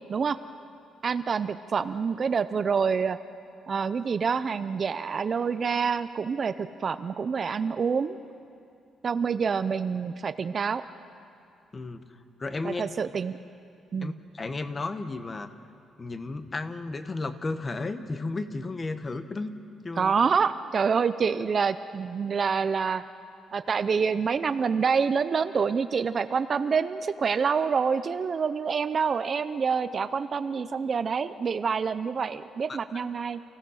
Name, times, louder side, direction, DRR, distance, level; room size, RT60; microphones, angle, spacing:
voice 1, 1.0-3.2 3.7-8.2 9.0-10.8 12.6-13.4 13.9-14.1 20.0-23.0 23.5-33.4, right 6 dB, 35° right, 12 dB, 0.5 m, -27 dB
voice 2, 12.4-12.8 14.0-15.5 16.0-19.5 19.8-20.1 32.7-32.8, left 3 dB, 25° left, 10 dB, 0.9 m, -33 dB
29.5 x 16.5 x 6.4 m, 2.6 s
cardioid pair, 155°, 0 cm